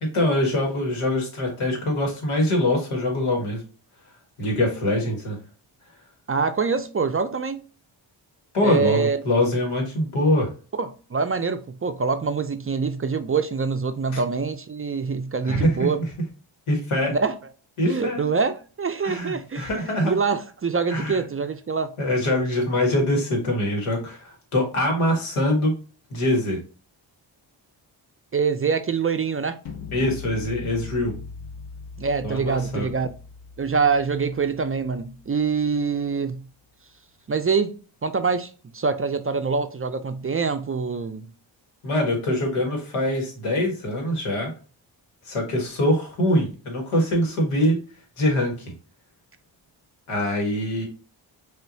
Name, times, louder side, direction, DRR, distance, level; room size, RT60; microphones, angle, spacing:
voice 1, 0.0-3.6 4.4-5.4 8.5-10.5 14.1-14.2 15.4-16.1 16.7-17.1 17.8-18.3 19.0-20.2 20.9-21.2 22.0-25.7 26.1-26.6 29.9-31.1 32.2-32.9 41.8-44.5 45.2-47.8 48.2-48.7 50.1-50.9, left 1 dB, 85° left, 1.6 m, -23 dB
voice 2, 6.3-7.6 8.6-9.2 10.8-16.0 17.1-17.3 17.8-19.7 20.0-21.9 28.3-29.6 32.0-33.1 33.6-36.4 37.3-41.3, right 5 dB, 30° right, 0.4 m, -25 dB
sound 1, 29.7-35.7, left 5 dB, 70° left, 1.0 m, -40 dB
5.4 x 2.5 x 2.7 m
cardioid pair, 55°, 49 cm